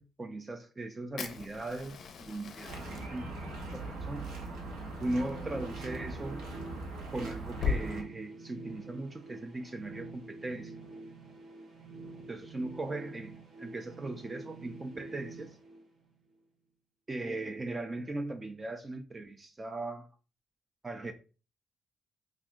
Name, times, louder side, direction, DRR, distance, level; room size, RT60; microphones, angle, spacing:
voice 1, 0.0-3.3 3.7-4.3 5.0-6.4 7.1-10.7 12.3-15.6 17.1-20.1 20.8-21.1, right 2 dB, 25° right, 0.3 m, -38 dB
Fire, 1.2-7.8, left 5 dB, 60° left, 0.5 m, -40 dB
sound 1, 2.7-8.0, right 2 dB, 90° right, 0.9 m, -41 dB
sound 2, 4.4-16.4, right 3 dB, 55° right, 0.9 m, -48 dB
2.7 x 2.4 x 3.5 m
cardioid pair, 90°, 0 cm